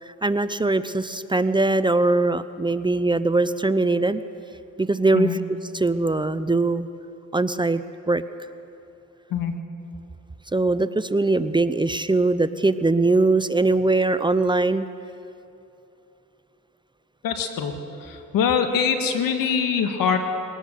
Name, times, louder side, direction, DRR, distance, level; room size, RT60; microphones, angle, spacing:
voice 1, 0.0-4.2 4.8-5.4 5.7-6.9 7.3-7.8 8.1-8.2 10.5-14.9, right 2 dB, 15° right, 13 dB, 0.6 m, -21 dB
voice 2, 17.2-17.7 18.0-20.2, left 7 dB, 85° left, 6 dB, 1.9 m, -23 dB
21.5 x 18.5 x 6.7 m, 2.8 s
cardioid pair, 80°, 33 cm